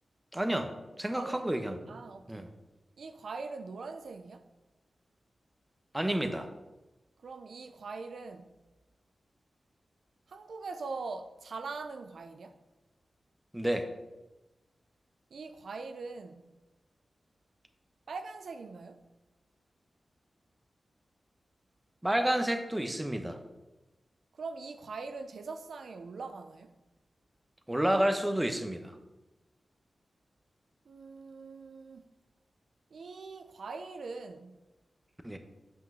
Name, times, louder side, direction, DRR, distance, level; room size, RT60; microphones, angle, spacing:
voice 1, 0.3-0.7 1.0-2.0 2.3-2.5 5.9-6.5 13.5-13.9 22.0-23.4 27.7-28.9 35.2-35.4, right 1 dB, 15° right, 1.0 m, -30 dB
voice 2, 1.9-2.5 3.0-4.5 7.2-8.5 10.3-12.6 15.3-16.5 18.1-19.0 24.3-26.7 30.9-32.1 32.9-34.6, right 4 dB, 80° right, 0.6 m, -42 dB
8.0 x 5.8 x 5.5 m
cardioid pair, 60°, 0 cm